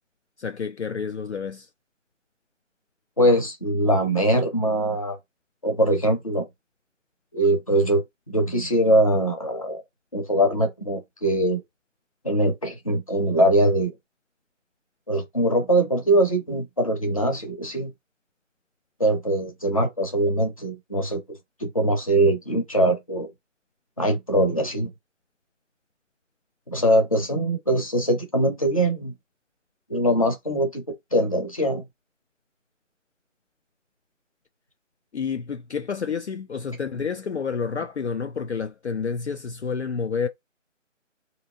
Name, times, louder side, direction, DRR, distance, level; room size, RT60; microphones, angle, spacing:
voice 1, 0.4-1.7 35.1-40.3, left 6 dB, 60° left, 0.5 m, -29 dB
voice 2, 3.2-5.2 5.6-6.5 7.3-9.8 10.1-11.6 12.2-13.9 15.1-17.9 19.0-21.2 21.6-23.3 24.0-24.9 26.7-29.1 29.9-30.8 31.1-31.8, right 1 dB, 25° left, 0.8 m, -22 dB
3.4 x 2.8 x 2.6 m
figure-of-eight pair, 165°, 38 cm